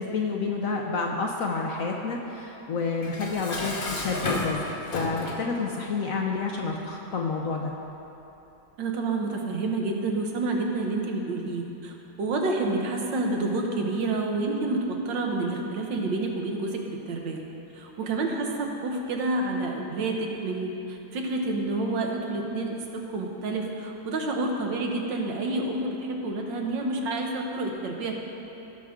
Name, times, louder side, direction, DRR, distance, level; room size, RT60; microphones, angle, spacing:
voice 1, 0.0-4.6 4.9-7.7, left 4 dB, 65° left, 1 dB, 0.9 m, -29 dB
Dishes pots and pans, 3.0-5.5, left 2 dB, 40° left, 0.9 m, -32 dB
voice 2, 8.8-16.8 17.1-17.4 17.7-28.1, right 2 dB, 80° right, 1 dB, 1.7 m, -29 dB
16.5 x 5.9 x 3.7 m, 3.0 s
omnidirectional pair, 2.0 m